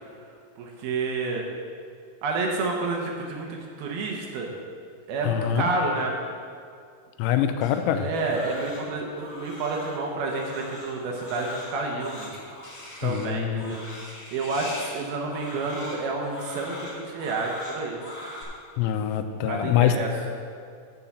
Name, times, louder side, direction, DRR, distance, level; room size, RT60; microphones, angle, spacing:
voice 1, 0.6-1.4 2.2-4.5 5.1-6.1 7.9-12.3 13.0-13.8 14.3-18.0 19.5-20.1, right 3 dB, 75° right, 0 dB, 2.3 m, -29 dB
voice 2, 5.2-5.6 7.2-8.1 13.0-13.7 18.8-20.1, left 10 dB, 85° left, 8 dB, 3.0 m, -24 dB
Crying sobbing, 7.6-18.4, left 1 dB, 40° left, 1.9 m, -41 dB
10.5 x 5.5 x 7.2 m, 2.3 s
omnidirectional pair, 5.6 m